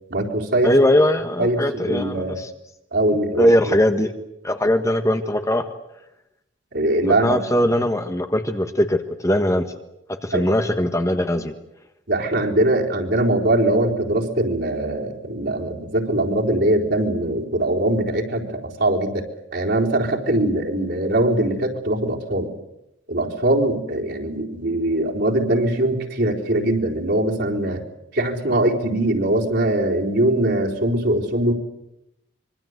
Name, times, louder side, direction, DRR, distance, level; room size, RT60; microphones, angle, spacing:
voice 1, 0.1-0.7 1.4-2.4 2.9-3.7 6.7-7.4 10.3-10.4 12.1-19.2 19.5-22.5 23.1-27.8 28.1-31.5, right 1 dB, 60° right, 0 dB, 4.2 m, -21 dB
voice 2, 0.6-2.5 3.4-4.1 4.4-5.6 7.0-9.7 10.2-11.5, left 1 dB, 15° left, 7 dB, 1.5 m, -20 dB
25.5 x 24.0 x 8.1 m, 0.85 s
head